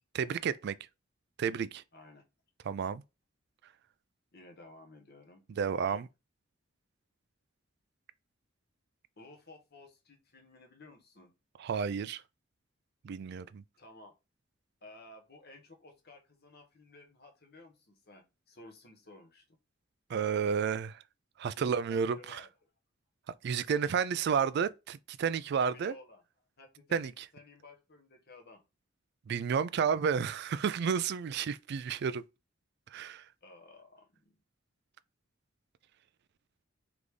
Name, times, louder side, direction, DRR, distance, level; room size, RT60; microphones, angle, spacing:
voice 1, 0.1-0.8 1.4-1.8 2.7-3.0 5.5-6.1 11.6-12.2 13.0-13.6 20.1-21.0 21.4-22.4 23.4-25.9 26.9-27.2 29.3-32.2 32.9-33.2, right 6 dB, 60° right, 0.3 m, -31 dB
voice 2, 1.9-2.2 4.3-5.4 5.8-6.0 9.2-11.3 13.8-14.1 14.8-19.6 21.5-22.5 23.7-24.0 25.6-26.2 26.6-28.6 33.4-34.4, left 2 dB, 55° left, 1.4 m, -55 dB
3.9 x 3.4 x 3.3 m
head